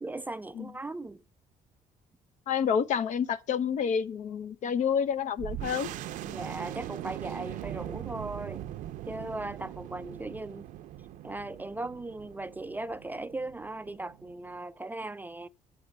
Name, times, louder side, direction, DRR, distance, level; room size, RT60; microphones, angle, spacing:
voice 1, 0.0-1.2 6.3-8.7 9.1-10.7 11.2-15.5, right 2 dB, 15° right, 0.4 m, -38 dB
voice 2, 2.5-5.9, left 7 dB, 65° left, 0.8 m, -28 dB
sound 1, 5.4-14.6, right 13 dB, 75° right, 0.6 m, -41 dB
7.8 x 4.9 x 6.8 m
cardioid pair, 100°, 13 cm